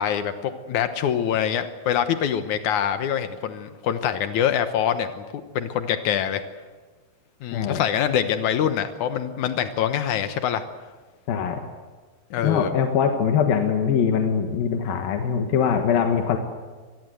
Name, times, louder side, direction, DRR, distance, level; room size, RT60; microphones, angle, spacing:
voice 1, 0.0-6.4 7.4-10.6 12.3-12.7, left 9 dB, 90° left, 9 dB, 1.7 m, -25 dB
voice 2, 7.5-7.8 11.3-11.6 12.4-16.4, left 7 dB, 60° left, 4 dB, 3.0 m, -22 dB
24.5 x 20.5 x 8.0 m, 1.4 s
omnidirectional pair, 5.2 m